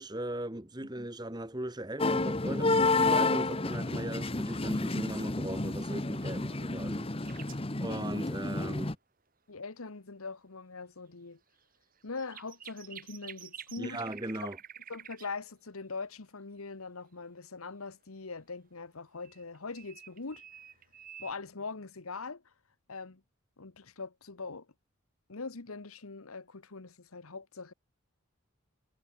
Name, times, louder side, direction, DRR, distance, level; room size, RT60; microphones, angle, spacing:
voice 1, 0.0-7.4 7.8-8.9 13.8-14.6, right 1 dB, 20° right, 1.6 m, -38 dB
sound 1, 2.0-8.9, left 2 dB, 25° left, 1.1 m, -30 dB
sound 2, 7.3-7.7 11.7-15.3 19.2-21.3, right 9 dB, 40° right, 4.7 m, -49 dB
voice 2, 9.5-11.4 12.0-14.0 14.3-14.5 14.9-20.4 21.2-22.5 22.9-23.2 23.6-24.7 25.3-27.7, left 4 dB, 85° left, 1.3 m, -42 dB
head